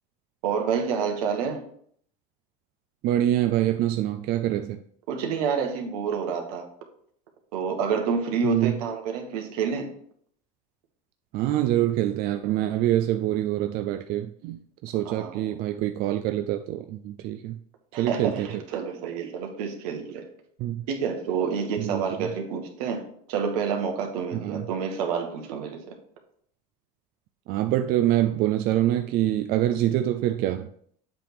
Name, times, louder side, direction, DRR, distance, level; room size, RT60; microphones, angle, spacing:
voice 1, 0.4-1.6 5.1-6.7 7.5-9.9 15.0-15.4 17.9-20.3 20.9-26.0, right 6 dB, 80° right, 3 dB, 1.4 m, -28 dB
voice 2, 3.0-4.8 8.4-8.7 11.3-17.6 17.9-18.6 20.6-20.9 21.8-22.3 24.3-24.7 27.5-30.7, right 13 dB, 55° right, 7 dB, 0.4 m, -25 dB
7.6 x 3.5 x 4.7 m, 0.62 s
supercardioid pair, 120°, 19 cm